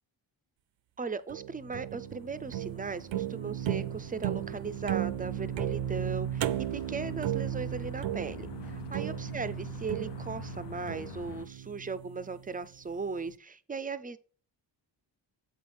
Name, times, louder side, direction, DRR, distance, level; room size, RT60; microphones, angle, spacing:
voice 1, 1.0-8.5 8.9-14.2, right 4 dB, 20° right, 14 dB, 0.3 m, -37 dB
sound 1, 1.3-12.5, right 11 dB, 85° right, 0.6 m, -35 dB
sound 2, 1.7-11.5, left 9 dB, 70° left, 0.6 m, -47 dB
7.8 x 5.6 x 4.3 m, 0.41 s
wide cardioid pair, 145°, 44 cm